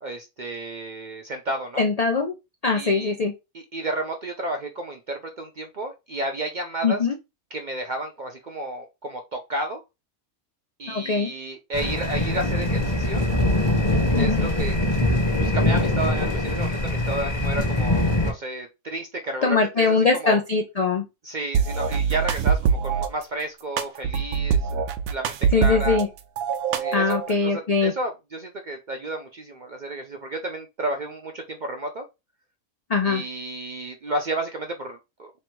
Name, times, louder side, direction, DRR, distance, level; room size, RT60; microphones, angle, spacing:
voice 1, 0.0-1.8 2.7-3.1 3.5-7.0 7.5-9.8 10.8-13.2 14.2-14.7 15.4-20.4 21.2-24.8 25.1-26.0 26.7-32.0 33.0-35.3, right 1 dB, 55° right, 0.5 m, -32 dB
voice 2, 1.8-2.3 2.6-3.3 6.8-7.1 10.9-11.3 14.1-14.5 19.4-21.0 25.5-26.1 26.9-27.9 32.9-33.2, left 4 dB, 70° left, 0.3 m, -22 dB
El Altar, 11.7-18.3, left 1 dB, 25° left, 0.8 m, -23 dB
sound 1, 21.5-23.1 23.8-26.0 26.4-27.3, right 7 dB, 75° right, 1.0 m, -23 dB
3.3 x 2.6 x 4.5 m
omnidirectional pair, 1.4 m